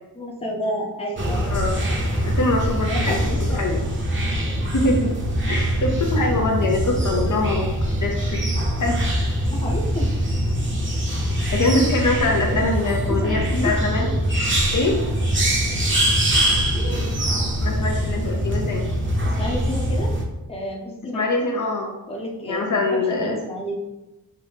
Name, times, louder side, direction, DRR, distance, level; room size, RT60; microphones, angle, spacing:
voice 1, 0.1-1.5 2.9-3.7 9.5-10.1 13.1-13.8 19.2-20.1 20.5-21.2 22.1-23.8, equal, 15° left, -2 dB, 0.7 m, -30 dB
sound 1, 1.2-20.2, equal, 35° right, 0.8 m, -23 dB
voice 2, 1.4-1.8 2.2-3.2 3.5-3.8 4.7-5.1 5.5-8.4 8.8-9.0 11.5-14.1 14.7-15.0 17.6-18.9 21.1-21.9 22.5-23.4, left 2 dB, 55° left, 1 dB, 0.7 m, -23 dB
5.3 x 2.7 x 3.5 m, 1.0 s
wide cardioid pair, 135°, 37 cm